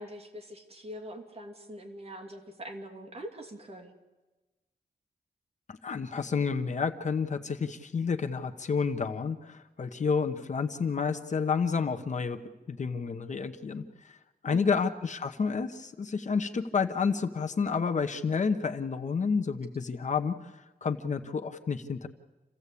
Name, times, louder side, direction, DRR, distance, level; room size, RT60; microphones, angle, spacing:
voice 1, 0.0-3.9 14.5-14.8, right 1 dB, 40° right, 3 dB, 2.7 m, -43 dB
voice 2, 5.7-12.4 12.7-14.2 14.4-22.1, left 5 dB, 50° left, 7 dB, 1.0 m, -30 dB
28.0 x 16.0 x 8.4 m, 1.2 s
wide cardioid pair, 170°, 16 cm